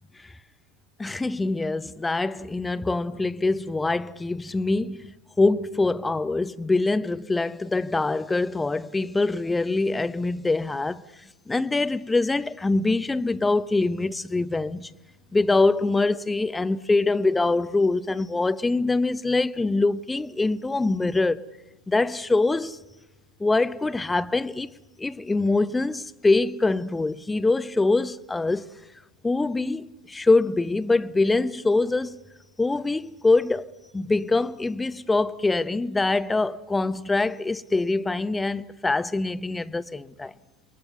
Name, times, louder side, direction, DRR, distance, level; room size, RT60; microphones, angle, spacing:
voice 1, 1.0-11.0 11.5-14.9 15.3-21.4 21.9-22.8 23.4-24.7 25.0-28.7 29.2-32.2 32.6-40.3, left 3 dB, 10° left, 0.8 m, -24 dB
27.5 x 22.5 x 7.1 m
figure-of-eight pair, 80°, 0 cm